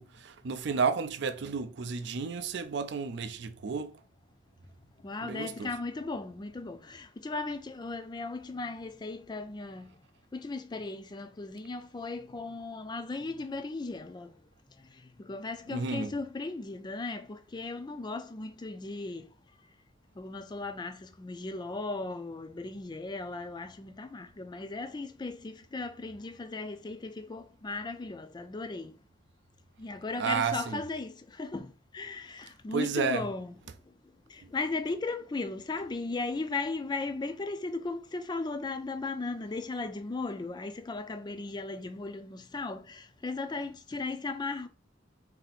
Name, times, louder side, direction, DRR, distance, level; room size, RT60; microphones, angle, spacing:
voice 1, 0.0-3.9 5.2-5.7 15.7-16.1 30.2-30.8 32.7-33.3, right 5 dB, 60° right, 0.4 m, -32 dB
voice 2, 5.0-9.9 10.3-14.3 15.2-19.2 20.2-28.9 29.8-33.5 34.3-44.7, left 3 dB, 20° left, 0.4 m, -37 dB
3.8 x 2.7 x 4.1 m
head